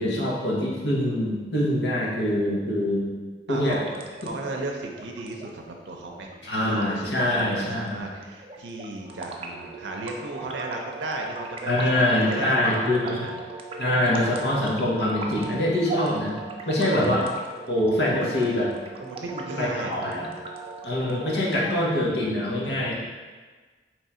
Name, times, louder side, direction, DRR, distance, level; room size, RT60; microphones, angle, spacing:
voice 1, 0.0-3.1 3.5-3.8 6.4-8.0 11.7-13.3 13.8-16.4 16.7-17.3 17.7-18.7 19.6-20.3 20.8-22.9, left 1 dB, 80° left, -4 dB, 1.1 m, -24 dB
voice 2, 3.5-6.3 6.6-13.3 19.0-20.2 22.6-22.9, right 2 dB, 85° right, 1 dB, 0.5 m, -35 dB
sound 1, 3.6-21.6, right 3 dB, 30° right, 0.4 m, -39 dB
3.6 x 3.2 x 4.2 m, 1.4 s
head